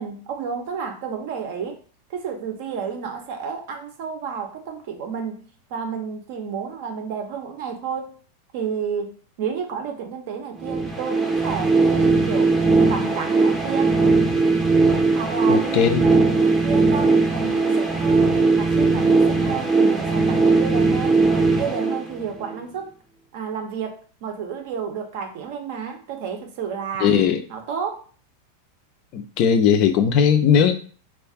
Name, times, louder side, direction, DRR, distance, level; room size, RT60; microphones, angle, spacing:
voice 1, 0.0-1.8 2.1-8.2 8.5-12.5 12.9-14.0 15.1-18.3 18.6-21.2 21.6-23.0 23.3-27.2 27.5-28.0, right 6 dB, 50° right, 5 dB, 0.6 m, -31 dB
sound 1, 10.6-22.5, right 3 dB, 10° right, 0.6 m, -19 dB
voice 2, 15.5-16.1 27.0-27.4 29.1-30.7, left 7 dB, 40° left, 7 dB, 0.4 m, -18 dB
2.4 x 2.4 x 3.5 m, 0.41 s
figure-of-eight pair, 90°, 0 cm